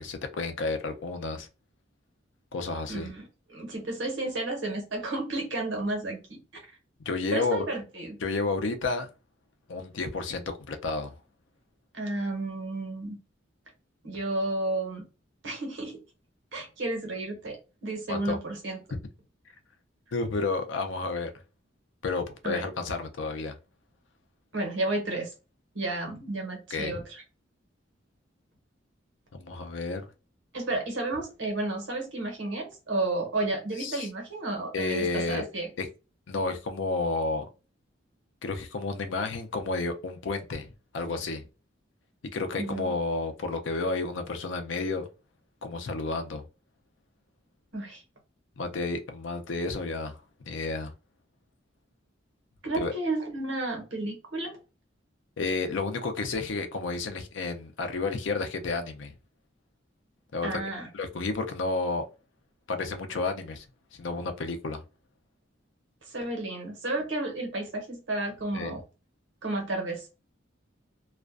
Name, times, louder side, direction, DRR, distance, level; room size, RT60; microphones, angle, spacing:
voice 1, 0.0-1.5 2.5-3.1 7.0-7.7 8.2-9.1 9.7-11.1 18.1-18.4 18.9-19.0 20.1-21.3 22.0-23.6 26.7-27.0 29.3-30.1 33.8-34.1 34.7-35.5 35.8-35.9 36.3-37.5 38.4-41.4 42.3-45.1 45.6-46.4 48.6-50.2 50.5-50.9 52.7-52.9 55.4-59.2 60.3-60.5 60.9-62.1 62.7-63.7 64.0-64.8 68.5-68.7, left 3 dB, 75° left, 0.5 m, -31 dB
voice 2, 2.9-3.2 3.5-6.6 7.3-8.2 11.9-13.2 14.0-15.0 15.4-16.0 16.5-18.8 22.4-22.7 24.5-25.3 25.7-27.0 30.5-35.7 42.6-42.9 47.7-48.0 52.6-54.6 60.4-60.9 66.0-68.8 69.4-70.1, right 2 dB, 80° right, 1.0 m, -32 dB
2.4 x 2.1 x 2.4 m
head